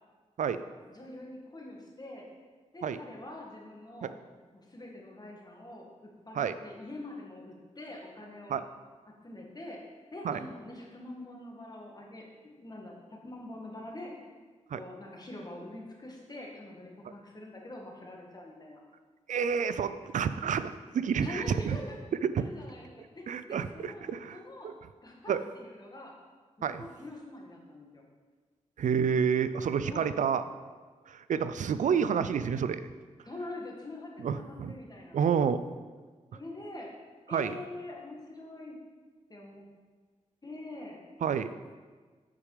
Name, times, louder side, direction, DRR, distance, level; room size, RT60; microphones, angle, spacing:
voice 1, 0.9-2.2 2.7-4.2 4.5-8.6 9.2-9.8 10.1-12.9 13.2-14.1 14.7-18.8 21.2-22.0 22.4-22.9 23.2-24.0 24.3-24.7 25.0-26.1 26.6-28.0 29.9-30.1 33.2-35.2 36.3-36.9 37.3-38.8 39.3-39.7 40.4-41.0, left 2 dB, 30° left, -1 dB, 1.8 m, -44 dB
voice 2, 19.3-21.8 22.3-22.5 23.3-24.4 24.6-24.7 25.3-25.4 26.6-26.9 28.8-30.4 31.1-32.8 34.2-34.8 35.1-35.6 37.3-37.5 41.2-41.5, right 7 dB, 80° right, 12 dB, 0.4 m, -29 dB
8.3 x 5.0 x 4.9 m, 1.4 s
cardioid pair, 65°, 13 cm